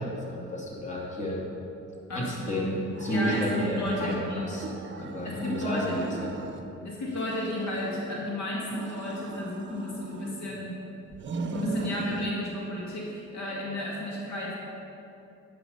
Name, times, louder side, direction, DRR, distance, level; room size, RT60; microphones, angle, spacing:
voice 1, 0.0-1.4 2.1-4.7 5.0-6.3, equal, 25° left, -4 dB, 2.5 m, -31 dB
voice 2, 2.1-2.6 3.1-4.4 5.2-6.0 6.8-10.8 11.5-14.5, left 1 dB, 65° left, -3 dB, 2.0 m, -33 dB
sound 1, 2.9-4.2 4.6-6.7 7.0-8.3 8.7-10.6 11.1-12.3, right 4 dB, 40° right, 0.8 m, -37 dB
11.0 x 5.7 x 5.6 m, 2.7 s
cardioid pair, 90°, 30 cm